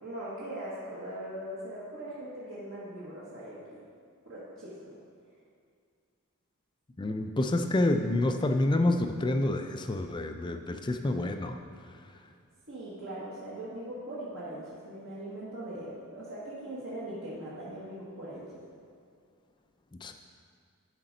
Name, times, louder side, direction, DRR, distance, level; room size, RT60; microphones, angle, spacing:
voice 1, 0.0-3.8 4.2-4.8 12.7-18.6, right 1 dB, 60° right, -9 dB, 1.4 m, -40 dB
voice 2, 7.0-11.6 20.0-20.1, left 2 dB, 20° left, 6 dB, 0.4 m, -28 dB
11.5 x 5.1 x 3.9 m, 2.2 s
head